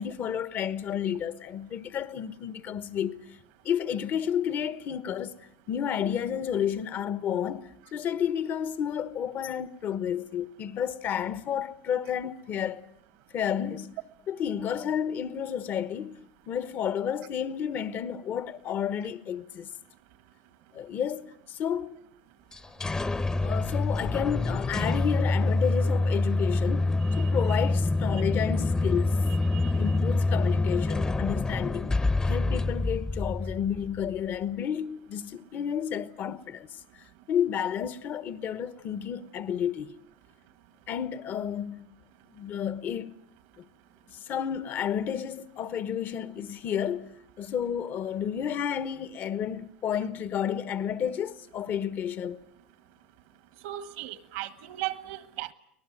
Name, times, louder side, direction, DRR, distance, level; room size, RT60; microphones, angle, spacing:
voice 1, 0.0-3.3 3.6-5.3 5.7-12.9 13.3-14.0 14.3-19.7 20.7-22.0 23.4-29.2 29.7-32.0 32.3-36.8 37.3-40.0 40.9-41.9 42.3-43.1 43.6-43.7 44.1-52.4, left 8 dB, 45° left, 1.3 m, -31 dB
sound 1, 22.5-34.2, left 2 dB, 15° left, 0.9 m, -26 dB
voice 2, 53.6-55.5, right 15 dB, 70° right, 1.5 m, -36 dB
24.5 x 18.5 x 9.2 m
supercardioid pair, 95°, 5 cm